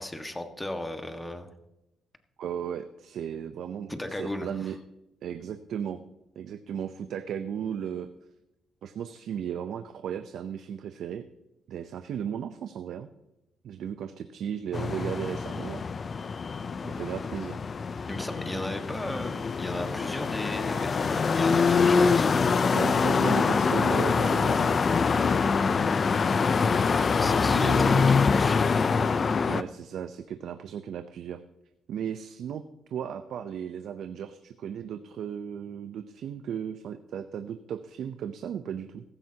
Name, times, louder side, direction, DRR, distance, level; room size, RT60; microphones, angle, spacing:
voice 1, 0.0-1.5 3.9-4.5 18.1-22.7 26.9-29.0, left 1 dB, 10° left, 6 dB, 1.6 m, -36 dB
voice 2, 2.4-4.8 5.2-6.0 6.4-8.1 8.8-11.2 11.7-13.1 13.6-15.8 16.8-17.6 22.7-24.8 27.4-28.2 29.5-31.4 31.9-32.6 32.9-39.0, right 8 dB, 70° right, 9 dB, 0.7 m, -35 dB
sound 1, 14.7-29.6, left 5 dB, 40° left, 0.6 m, -24 dB
15.5 x 14.0 x 2.9 m, 0.92 s
cardioid pair, 90°, 0 cm